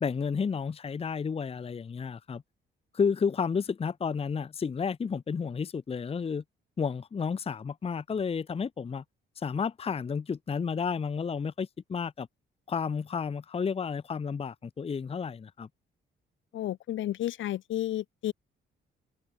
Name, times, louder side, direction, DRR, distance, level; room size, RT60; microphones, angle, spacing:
voice 1, 0.0-2.4 2.9-6.4 6.8-9.0 9.4-12.3 12.7-15.7, left 6 dB, 30° left, 0.8 m, -31 dB
voice 2, 16.5-18.3, left 13 dB, 75° left, 1.9 m, -32 dB
cardioid pair, 90°, 20 cm